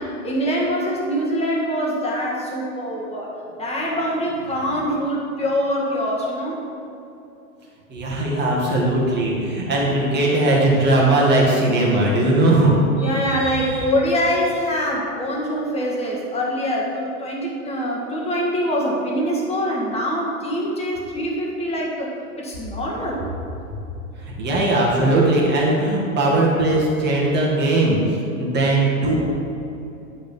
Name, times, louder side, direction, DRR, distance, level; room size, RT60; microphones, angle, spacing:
voice 1, 0.0-3.3 3.6-6.6 13.0-23.2, equal, 15° left, -3 dB, 1.8 m, -24 dB
voice 2, 7.9-13.8 24.2-29.1, right 2 dB, 25° right, -4 dB, 1.9 m, -19 dB
10.5 x 5.2 x 5.4 m, 2.9 s
hypercardioid pair, 130°, 45 cm